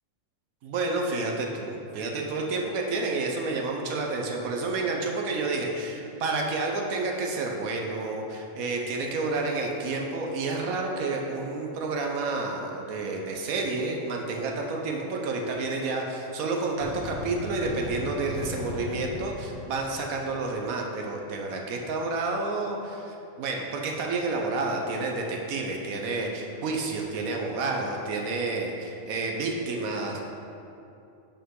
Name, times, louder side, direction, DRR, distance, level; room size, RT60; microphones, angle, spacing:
voice 1, 0.6-30.2, right 3 dB, 90° right, 1 dB, 1.3 m, -30 dB
sound 1, 16.8-20.8, left 3 dB, 40° left, 0.7 m, -38 dB
8.8 x 5.6 x 3.8 m, 2.7 s
omnidirectional pair, 1.4 m